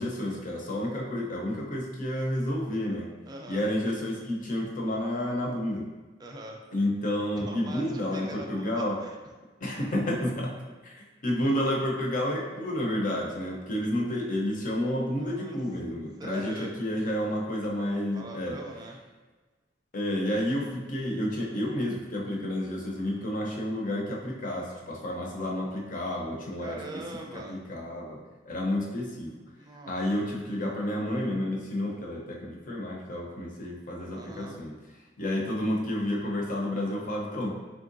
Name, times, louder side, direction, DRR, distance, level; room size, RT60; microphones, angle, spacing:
voice 1, 0.0-3.1 3.5-5.9 6.7-9.0 9.6-10.6 10.8-18.6 19.9-27.0 27.3-28.2 28.5-29.3 29.9-34.7 35.2-37.5, left 1 dB, 45° left, -2 dB, 0.7 m, -30 dB
voice 2, 3.3-3.7 6.2-6.6 7.5-9.2 15.2-15.6 16.2-16.7 17.9-19.0 26.6-27.6 29.6-29.9 34.1-34.6, right 2 dB, 20° right, 1 dB, 0.3 m, -42 dB
3.7 x 3.3 x 2.5 m, 1.3 s
head